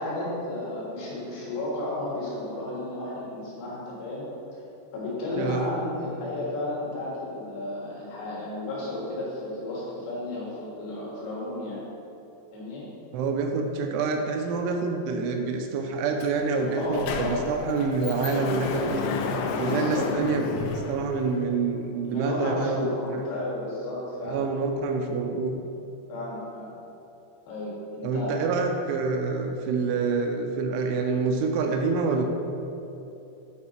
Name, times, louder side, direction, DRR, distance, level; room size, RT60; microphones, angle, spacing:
voice 1, 0.0-4.3 4.9-11.8 12.5-12.8 16.7-17.8 19.7-20.1 22.1-24.4 26.1-26.7 27.5-28.4, left 1 dB, 70° left, -7 dB, 3.4 m, -33 dB
voice 2, 5.3-5.7 13.1-19.1 19.6-23.2 24.2-25.6 28.0-32.2, right 4 dB, 85° right, 3 dB, 3.0 m, -27 dB
Sliding door, 16.2-16.3 16.6-21.6, left 4 dB, 90° left, 3.1 m, -31 dB
8.5 x 4.4 x 4.3 m, 2.9 s
omnidirectional pair, 5.5 m